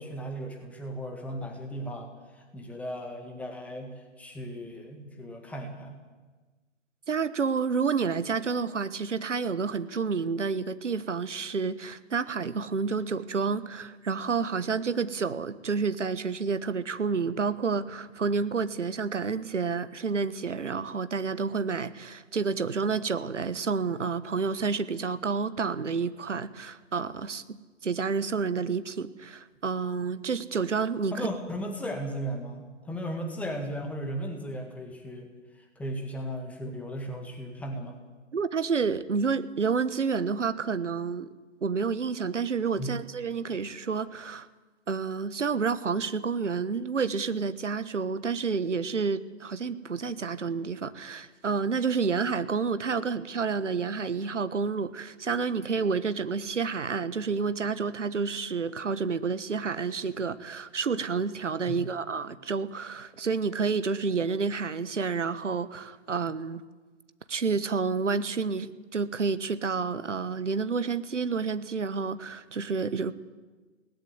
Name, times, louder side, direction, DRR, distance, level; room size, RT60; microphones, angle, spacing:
voice 1, 0.0-6.0 31.1-35.3 35.8-38.0 42.8-42.9 61.7-61.8, equal, 5° left, 3 dB, 1.8 m, -36 dB
voice 2, 7.1-27.6 27.8-31.3 38.3-41.3 41.6-44.5 44.9-66.6 67.3-73.1, right 5 dB, 70° right, 14 dB, 1.4 m, -29 dB
21.0 x 18.0 x 8.0 m, 1.3 s
figure-of-eight pair, 140°, 38 cm